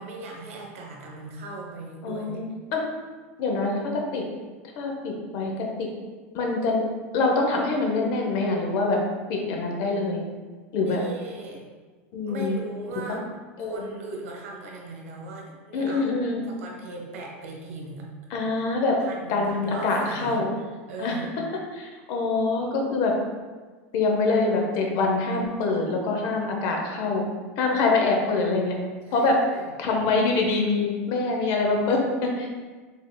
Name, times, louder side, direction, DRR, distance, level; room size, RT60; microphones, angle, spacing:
voice 1, 0.0-2.4 10.8-11.6 12.2-13.2 13.6-16.2 16.5-18.1 19.0-20.4 20.9-21.3 29.1-29.7, right 2 dB, 75° right, 0 dB, 0.8 m, -38 dB
voice 2, 2.0-2.8 3.4-4.2 4.8-5.9 6.3-6.8 7.1-9.0 9.3-10.2 10.7-11.0 12.1-12.6 13.1-13.2 13.6-13.9 15.7-16.4 18.3-19.0 19.3-20.5 21.0-21.2 21.7-23.1 23.9-27.2 27.6-28.7 29.1-29.4 29.8-32.5, left 3 dB, 55° left, 1 dB, 0.7 m, -25 dB
3.6 x 3.3 x 2.2 m, 1.4 s
hypercardioid pair, 105°, 7 cm